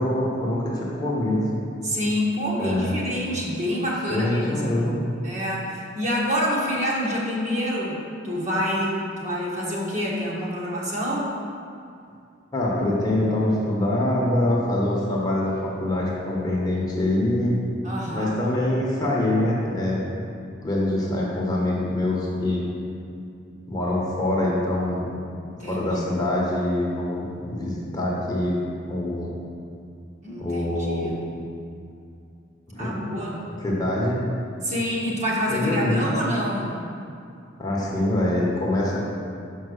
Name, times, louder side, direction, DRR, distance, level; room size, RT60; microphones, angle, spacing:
voice 1, 0.0-1.5 2.6-3.0 4.1-5.0 12.5-17.5 18.1-20.0 20.6-22.6 23.7-25.1 25.6-28.6 28.9-29.3 30.4-31.1 32.8-32.9 33.6-34.2 35.5-36.0 37.6-39.0, left 1 dB, 20° left, -4 dB, 1.1 m, -24 dB
voice 2, 1.8-4.8 5.2-11.3 17.8-18.4 25.6-26.0 30.2-31.2 32.7-33.4 34.6-36.7, equal, 35° right, -4 dB, 1.4 m, -27 dB
5.8 x 5.5 x 6.3 m, 2.5 s
head